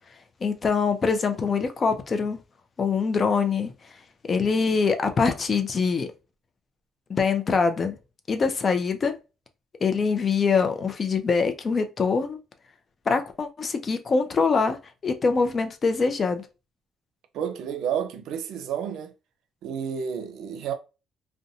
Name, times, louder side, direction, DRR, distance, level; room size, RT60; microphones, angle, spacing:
voice 1, 0.4-2.4 2.8-3.7 4.3-6.1 7.1-8.0 8.3-9.2 9.8-12.4 13.1-14.8 15.0-16.5, left 5 dB, 40° left, 0.5 m, -24 dB
voice 2, 17.3-19.1 19.6-20.7, right 8 dB, 80° right, 0.5 m, -30 dB
2.6 x 2.2 x 2.6 m
cardioid pair, 85°, 0 cm